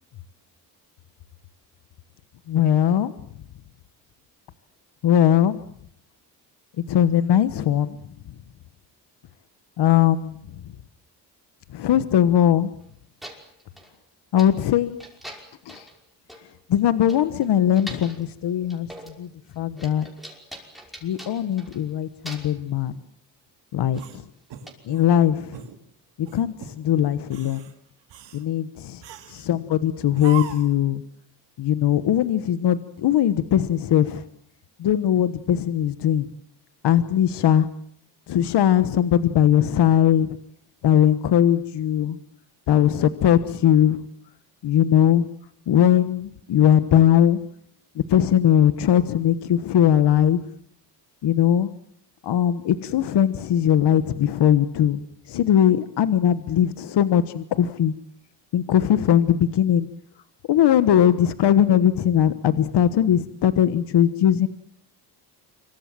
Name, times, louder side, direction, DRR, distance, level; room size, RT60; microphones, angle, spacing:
voice 1, 2.5-3.1 5.0-5.6 6.9-8.0 9.8-10.4 11.7-12.7 14.3-15.0 15.7-15.8 16.7-19.3 19.6-20.1 21.0-23.0 23.7-24.2 24.9-25.6 26.2-27.7 28.3-28.7 29.3-31.0 31.6-34.2 34.8-36.2 36.8-37.7 38.3-40.4 40.8-42.2 42.7-44.0 44.6-45.2 45.7-47.4 47.9-50.4 51.2-51.7 52.2-55.0 55.3-57.9 58.5-59.9 60.5-64.5, left 10 dB, 70° left, 13 dB, 1.3 m, -20 dB
sound 1, 12.8-12.9 13.2-13.9 14.4-14.7 15.0-16.0 16.3-16.4 16.8-16.9 17.1-18.2 18.7-19.2 19.5-21.9 22.2-22.6 23.9-24.1 24.7-24.8, equal, ahead, 5.6 m, -42 dB
sound 2, 23.9-25.1 25.5-25.8 26.2-26.8 27.2-27.7 28.1-28.4 29.0-29.5 30.1-30.8, right 9 dB, 80° right, 2.7 m, -38 dB
26.5 x 24.0 x 7.6 m, 0.66 s
cardioid pair, 115°, 43 cm